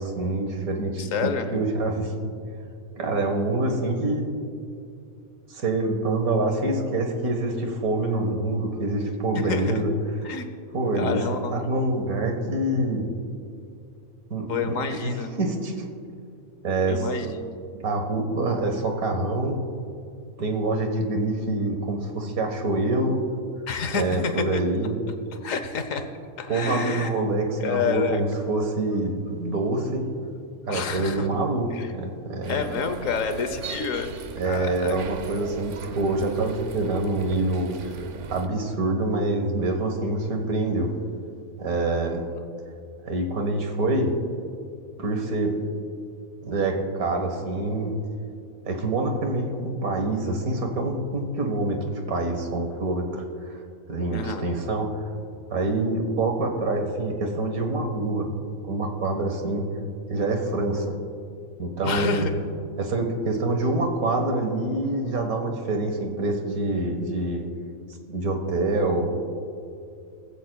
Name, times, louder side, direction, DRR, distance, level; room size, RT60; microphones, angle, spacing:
voice 1, 0.0-2.3 3.0-4.4 5.5-9.9 10.7-11.2 11.5-13.1 14.3-15.8 16.6-17.3 17.7-19.6 20.4-23.2 23.9-25.0 26.5-30.0 30.7-32.8 34.4-37.9 38.3-40.9 41.6-42.2 43.0-44.1 45.0-45.5 46.4-47.9 48.7-53.6 53.9-55.0 55.5-58.3 58.6-59.7 60.1-60.9 61.6-62.3 62.8-67.4 68.1-69.1, right 2 dB, 90° right, 4 dB, 1.9 m, -26 dB
voice 2, 1.0-1.5 9.4-9.7 10.2-10.5 11.0-11.7 14.5-15.3 16.9-17.5 23.7-24.6 25.4-26.1 26.4-27.1 27.6-28.2 30.7-31.3 31.7-31.9 32.5-34.1 34.4-35.0 54.1-54.4 61.8-62.3, left 5 dB, 70° left, 8 dB, 1.3 m, -28 dB
sound 1, 32.4-38.5, right 5 dB, 65° right, 1.0 m, -38 dB
20.5 x 14.5 x 2.3 m, 2.4 s
omnidirectional pair, 1.5 m